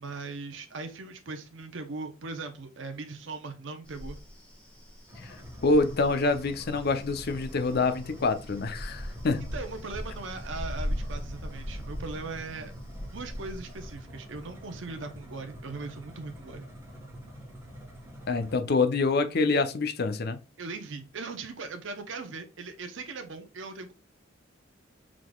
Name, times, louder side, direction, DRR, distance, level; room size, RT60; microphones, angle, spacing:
voice 1, 0.0-4.2 9.5-12.7 13.1-16.6 18.7-18.8 20.6-23.9, right 3 dB, 70° right, 0.7 m, -39 dB
sound 1, 3.8-13.9, equal, 5° left, 1.4 m, -39 dB
sound 2, 5.1-18.6, equal, 15° right, 1.2 m, -46 dB
voice 2, 5.6-9.5 18.3-20.4, left 3 dB, 55° left, 0.5 m, -26 dB
4.9 x 3.8 x 2.3 m
head